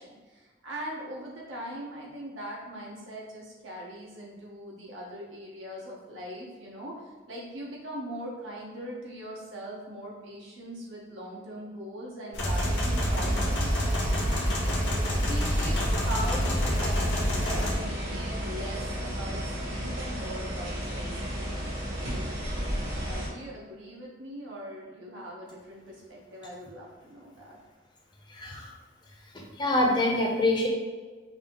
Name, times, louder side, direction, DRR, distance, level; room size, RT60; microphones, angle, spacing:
voice 1, 0.0-21.6 22.1-22.3 23.0-27.6, right 1 dB, 85° right, -4 dB, 1.2 m, -41 dB
sound 1, 12.3-17.7, equal, 65° left, 0.8 m, -27 dB
sound 2, 12.5-23.3, equal, 70° right, 1.4 m, -34 dB
voice 2, 28.3-28.7 29.3-30.7, left 1 dB, 25° left, -1 dB, 0.6 m, -25 dB
5.5 x 2.0 x 3.6 m, 1.4 s
head